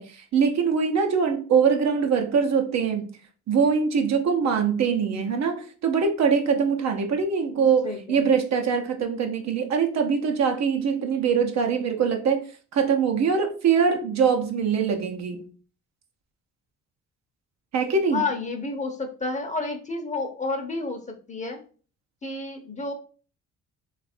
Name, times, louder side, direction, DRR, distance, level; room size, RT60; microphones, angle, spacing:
voice 1, 0.0-3.1 3.5-12.4 12.7-15.4 17.7-18.2, right 6 dB, 60° right, 4 dB, 0.8 m, -23 dB
voice 2, 7.5-8.3 18.1-21.0 21.3-21.6 22.2-22.9, left 3 dB, 25° left, 5 dB, 0.8 m, -30 dB
3.2 x 2.5 x 4.3 m, 0.39 s
cardioid pair, 90°, 30 cm